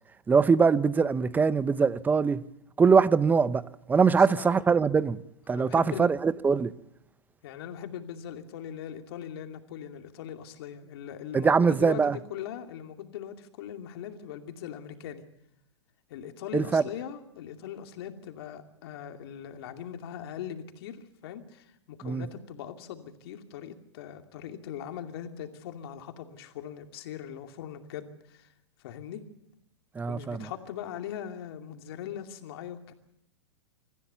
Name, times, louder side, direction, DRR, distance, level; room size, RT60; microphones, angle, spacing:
voice 1, 0.3-2.4 2.8-3.6 3.9-5.2 5.5-6.7 11.3-12.2 16.5-16.8 22.0-22.2 30.0-30.5, right 5 dB, 10° right, 0.7 m, -22 dB
voice 2, 4.1-4.7 5.5-6.1 7.4-15.2 16.1-28.5 28.8-29.2 30.1-32.9, left 9 dB, 60° left, 2.6 m, -40 dB
25.5 x 15.0 x 6.9 m
hypercardioid pair, 125°, 15 cm